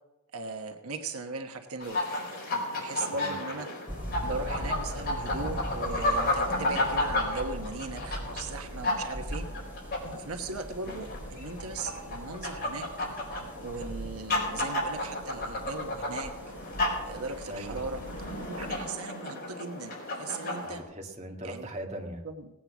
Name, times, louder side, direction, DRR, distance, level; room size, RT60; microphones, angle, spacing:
voice 1, 0.3-3.7 4.2-9.4 10.0-12.9 13.6-16.3 17.0-18.0 18.5-20.8 21.4-21.7 22.2-22.5, right 3 dB, 80° right, 5 dB, 1.2 m, -38 dB
sound 1, 1.8-20.8, left 1 dB, 45° left, 4.2 m, -33 dB
sound 2, 3.9-18.8, equal, 10° right, 3.3 m, -41 dB
voice 2, 17.5-17.8 20.6-22.2, right 1 dB, 30° right, 1 dB, 1.9 m, -40 dB
18.0 x 8.7 x 6.1 m, 1.0 s
head